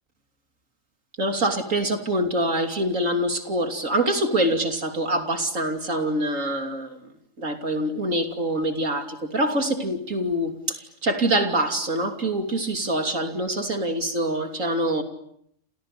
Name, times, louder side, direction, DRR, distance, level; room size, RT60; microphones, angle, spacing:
voice 1, 1.2-7.0 7.4-15.0, right 1 dB, 80° right, 5 dB, 3.5 m, -25 dB
29.5 x 29.0 x 6.8 m, 0.71 s
omnidirectional pair, 1.3 m